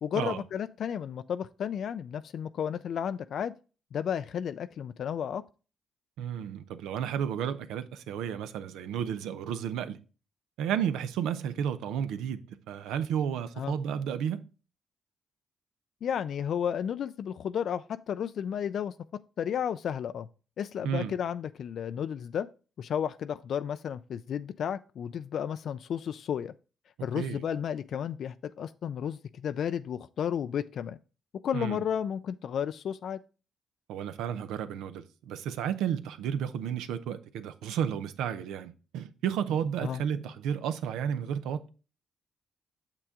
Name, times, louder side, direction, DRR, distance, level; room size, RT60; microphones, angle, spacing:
voice 1, 0.0-3.5 3.9-5.4 13.6-13.8 16.0-18.9 19.4-20.3 20.6-22.5 22.8-26.5 27.0-31.0 31.4-33.2 39.8-40.0, left 8 dB, 65° left, 0.3 m, -33 dB
voice 2, 6.2-10.0 10.6-14.4 20.8-21.1 27.1-27.5 31.5-31.8 33.9-41.7, right 8 dB, 85° right, 0.6 m, -32 dB
6.7 x 6.0 x 3.6 m
supercardioid pair, 65°, 0 cm